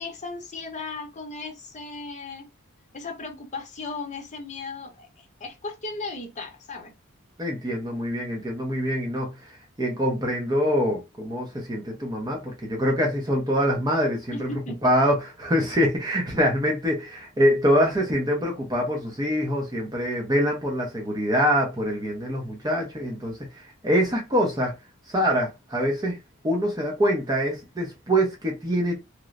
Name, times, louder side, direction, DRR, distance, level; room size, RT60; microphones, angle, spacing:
voice 1, 0.0-2.5 2.9-6.9 14.3-14.8, left 3 dB, 35° left, 0.7 m, -36 dB
voice 2, 7.4-14.5 14.8-24.7 25.1-26.2 26.4-29.0, equal, 20° right, 0.6 m, -24 dB
2.9 x 2.0 x 2.3 m
head